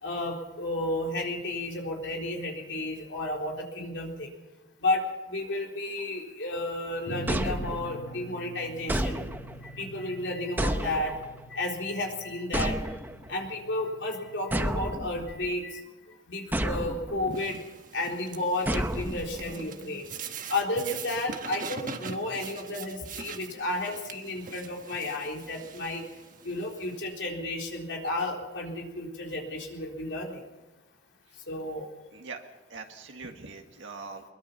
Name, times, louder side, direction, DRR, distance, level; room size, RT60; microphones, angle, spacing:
voice 1, 0.0-4.3 4.8-9.2 9.7-11.1 11.5-12.7 13.3-15.8 16.3-17.6 17.9-20.1 20.5-26.0 26.4-30.4 31.5-31.9, left 2 dB, 70° left, 0 dB, 4.0 m, -32 dB
sound 1, 7.1-14.7, right 1 dB, 85° left, 1.6 m, -45 dB
sound 2, 7.3-8.2 8.9-9.7 10.6-11.4 12.5-13.3 14.5-15.5 16.5-17.3 18.7-19.6, right 1 dB, 10° right, 0.8 m, -31 dB
sound 3, 17.3-27.1, right 6 dB, 45° right, 1.4 m, -43 dB
voice 2, 32.7-34.2, right 3 dB, 85° right, 3 dB, 1.9 m, -41 dB
22.0 x 22.0 x 5.7 m, 1.1 s
head